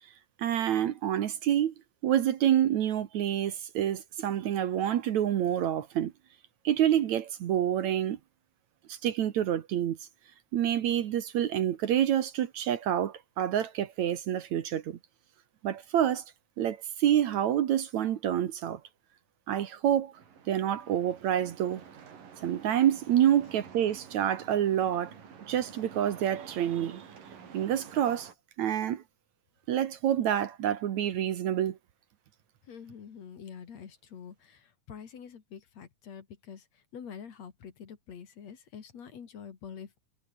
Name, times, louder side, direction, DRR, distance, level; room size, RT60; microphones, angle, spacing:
voice 1, 0.4-1.7 2.0-6.1 6.6-8.2 8.9-10.0 10.5-15.0 15.6-16.2 16.6-18.8 19.5-20.1 20.5-21.8 22.4-25.1 25.5-27.0 27.5-28.3 28.6-29.0 29.7-31.8, right 10 dB, 65° right, 2.4 m, -27 dB
sound 1, 20.1-28.3, right 7 dB, 80° right, 5.0 m, -50 dB
voice 2, 32.6-39.9, left 7 dB, 55° left, 3.3 m, -46 dB
omnidirectional pair, 3.8 m